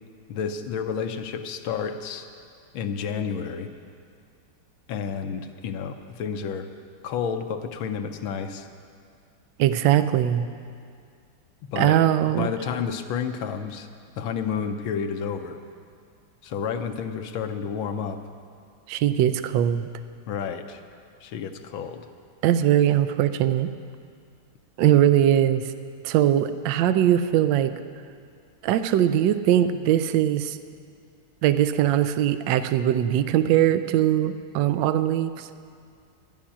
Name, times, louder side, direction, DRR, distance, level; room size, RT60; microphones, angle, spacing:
voice 1, 0.3-2.3 2.7-3.7 4.9-6.7 7.0-8.7 11.7-12.0 12.4-13.9 14.2-15.6 16.4-18.2 20.3-20.8 21.2-22.1, left 6 dB, 75° left, 7 dB, 1.5 m, -30 dB
voice 2, 9.6-10.5 11.8-12.5 18.9-19.9 22.4-23.7 24.8-25.6 26.0-27.7 28.6-30.6 31.4-35.5, right 11 dB, 70° right, 12 dB, 1.2 m, -21 dB
12.5 x 7.3 x 9.9 m, 2.3 s
omnidirectional pair, 2.3 m